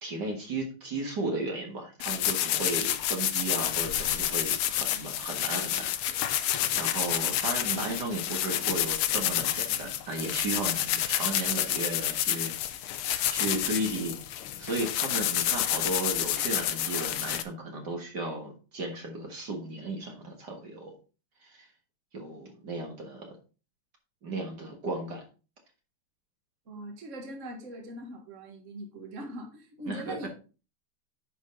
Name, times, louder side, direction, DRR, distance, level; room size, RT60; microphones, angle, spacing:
voice 1, 0.0-6.3 6.7-12.5 12.8-21.0 21.4-21.7 22.1-23.4 24.2-25.2 29.9-30.3, right 2 dB, 55° right, 2 dB, 2.1 m, -35 dB
sound 1, 2.0-17.4, left 11 dB, 85° left, 1.7 m, -29 dB
voice 2, 26.7-30.3, right 1 dB, 35° right, 2 dB, 1.9 m, -41 dB
10.0 x 5.5 x 3.9 m, 0.34 s
omnidirectional pair, 2.4 m